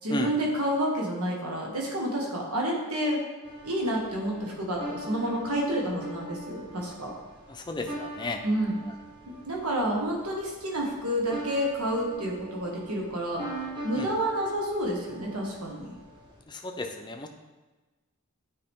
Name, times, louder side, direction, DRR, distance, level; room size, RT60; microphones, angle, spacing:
voice 1, 0.0-3.2 3.6-7.1 8.4-8.7 9.5-13.4 13.8-15.9, right 1 dB, 80° right, -2 dB, 1.6 m, -29 dB
sound 1, 3.4-16.4, right 1 dB, 20° right, 1.2 m, -42 dB
voice 2, 7.5-8.4 13.9-14.1 16.5-17.3, left 2 dB, 20° left, 4 dB, 0.6 m, -34 dB
9.3 x 4.9 x 3.7 m, 1.2 s
head